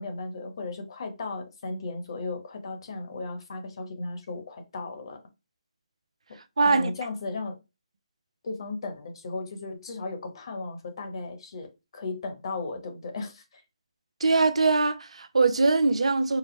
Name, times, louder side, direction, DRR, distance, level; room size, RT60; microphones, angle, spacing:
voice 1, 0.0-5.2 6.6-7.6 8.4-13.6, left 3 dB, 50° left, 1.1 m, -36 dB
voice 2, 6.6-6.9 14.2-16.4, right 3 dB, 70° right, 0.6 m, -22 dB
4.9 x 2.1 x 3.2 m
figure-of-eight pair, 150°, 3 cm